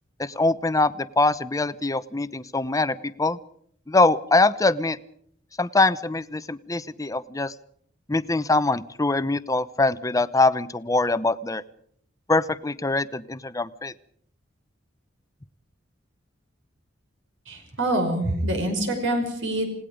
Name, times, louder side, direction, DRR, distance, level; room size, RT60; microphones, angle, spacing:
voice 1, 0.2-3.4 3.9-5.0 5.6-7.5 8.1-11.6 12.3-13.9, left 2 dB, 15° left, 15 dB, 0.8 m, -23 dB
voice 2, 17.5-19.7, right 1 dB, 70° right, 4 dB, 5.5 m, -25 dB
29.5 x 18.5 x 5.1 m, 0.65 s
head